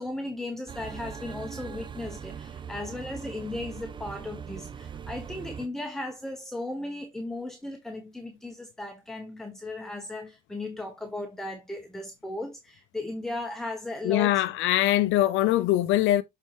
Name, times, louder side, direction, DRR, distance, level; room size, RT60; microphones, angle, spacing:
voice 1, 0.0-14.4, left 2 dB, ahead, 0.9 m, -36 dB
sound 1, 0.7-5.7, right 7 dB, 25° right, 0.4 m, -40 dB
voice 2, 14.0-16.2, left 14 dB, 85° left, 0.6 m, -22 dB
7.5 x 4.3 x 3.0 m
cardioid pair, 140°, 20 cm